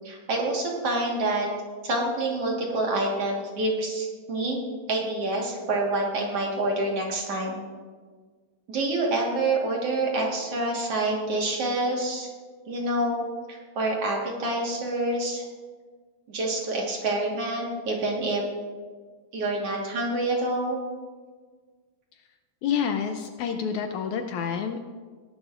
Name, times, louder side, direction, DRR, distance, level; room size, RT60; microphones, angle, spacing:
voice 1, 0.0-1.5 1.8-4.6 4.9-7.6 8.7-12.3 12.7-15.5 16.3-18.4 19.3-20.8, right 2 dB, 55° right, -1 dB, 2.3 m, -27 dB
voice 2, 22.6-24.8, left 7 dB, 80° left, 6 dB, 1.8 m, -28 dB
19.5 x 11.0 x 2.5 m, 1.5 s
omnidirectional pair, 3.8 m